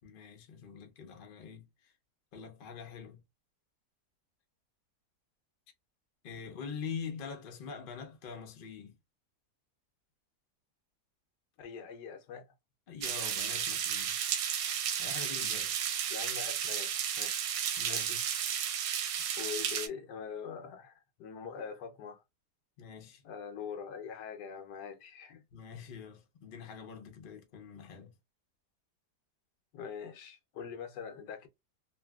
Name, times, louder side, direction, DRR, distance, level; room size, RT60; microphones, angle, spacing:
voice 1, 0.0-1.9 2.3-3.2 6.2-9.0 12.9-14.2 15.0-15.7 17.8-18.2 22.8-23.2 25.5-28.1, left 6 dB, 50° left, 0.6 m, -44 dB
voice 2, 11.6-12.5 16.1-17.3 17.8-18.2 19.4-22.2 23.2-25.4 29.7-31.5, left 6 dB, 80° left, 1.3 m, -43 dB
sound 1, 13.0-19.9, right 9 dB, 75° right, 1.1 m, -33 dB
3.0 x 2.6 x 2.3 m
omnidirectional pair, 1.8 m